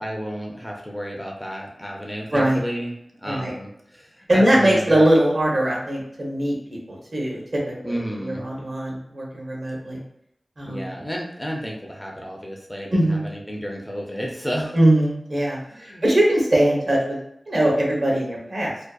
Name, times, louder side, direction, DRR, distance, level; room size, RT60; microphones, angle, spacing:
voice 1, 0.0-2.9 3.2-5.0 7.8-8.5 10.6-14.8 15.7-16.0, equal, 10° left, -1 dB, 0.4 m, -32 dB
voice 2, 4.3-10.0 10.6-10.9 12.9-13.3 14.7-17.2 17.5-18.7, right 1 dB, 60° right, -4 dB, 0.8 m, -21 dB
2.5 x 2.2 x 2.3 m, 0.76 s
wide cardioid pair, 60°, 0 cm